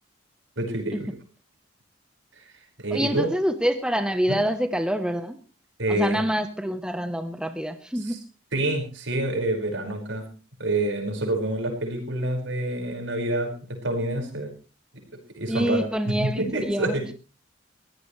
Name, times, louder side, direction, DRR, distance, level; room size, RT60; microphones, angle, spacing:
voice 1, 0.6-1.2 2.4-2.5 2.8-3.3 4.3-4.4 5.8-6.2 8.0-8.2 8.5-10.3 10.6-14.5 15.4-17.1, right 1 dB, 75° right, 3 dB, 5.4 m, -27 dB
voice 2, 2.9-5.4 5.9-8.2 15.5-17.0, equal, 5° right, 8 dB, 0.9 m, -26 dB
21.5 x 16.5 x 3.2 m, 0.34 s
head